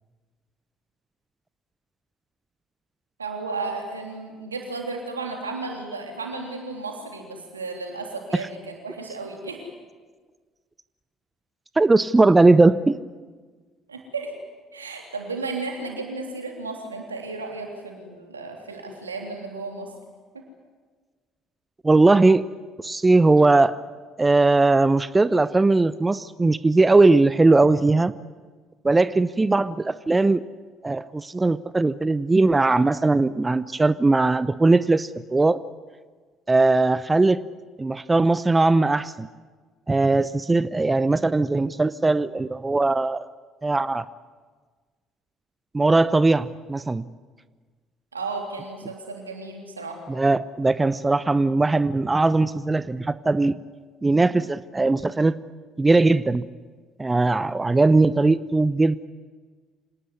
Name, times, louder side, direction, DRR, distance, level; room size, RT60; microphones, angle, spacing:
voice 1, 3.2-9.6 13.9-14.3 14.7-19.9 48.1-50.0, right 3 dB, 90° right, 2 dB, 3.4 m, -34 dB
voice 2, 11.8-13.0 21.8-22.5 22.8-23.8 24.2-28.1 28.8-30.4 30.8-35.6 36.5-37.4 37.8-39.3 39.9-43.3 43.6-44.1 45.7-47.0 50.1-53.6 54.0-55.4 55.8-56.5 57.0-59.0, right 3 dB, 20° right, 17 dB, 0.7 m, -19 dB
26.5 x 19.0 x 9.7 m, 1.5 s
figure-of-eight pair, 55°, 0 cm